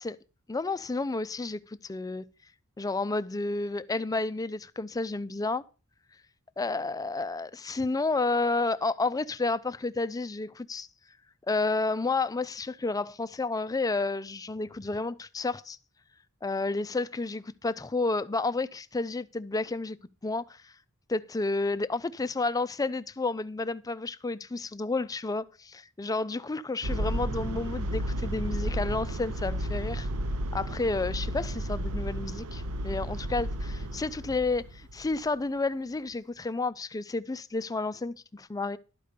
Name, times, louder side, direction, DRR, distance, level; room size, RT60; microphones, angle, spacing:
voice 1, 0.5-2.2 2.8-5.6 6.6-10.9 11.5-15.8 16.4-20.0 20.2-20.7 21.1-30.1 30.5-38.8, left 3 dB, 15° left, 0.4 m, -31 dB
sound 1, 26.8-35.1, right 1 dB, 75° right, 0.8 m, -32 dB
12.0 x 5.1 x 6.7 m
head